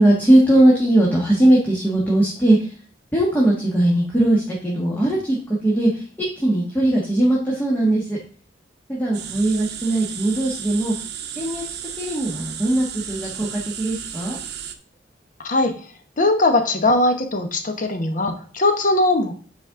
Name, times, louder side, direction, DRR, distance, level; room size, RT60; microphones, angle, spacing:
voice 1, 0.0-2.7 3.1-6.0 6.4-8.2 8.9-10.9 11.4-11.6 12.0-14.4, right 1 dB, 10° left, -5 dB, 1.4 m, -19 dB
sound 1, 9.1-14.7, right 9 dB, 60° right, 0.7 m, -34 dB
voice 2, 15.4-15.9 16.2-19.4, left 2 dB, 45° left, 6 dB, 1.0 m, -20 dB
8.9 x 4.2 x 3.7 m, 0.43 s
head